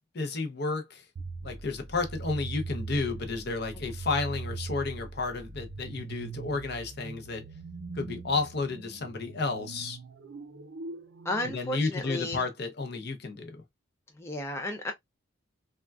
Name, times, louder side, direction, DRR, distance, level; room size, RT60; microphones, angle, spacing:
voice 1, 0.1-1.1 1.4-7.5 7.9-10.0 11.5-13.6, left 3 dB, 50° left, 0.6 m, -32 dB
sound 1, 1.2-11.5, right 3 dB, 60° right, 0.5 m, -41 dB
voice 2, 11.2-12.4 14.2-14.9, left 1 dB, 15° left, 0.3 m, -33 dB
3.5 x 2.3 x 2.2 m
head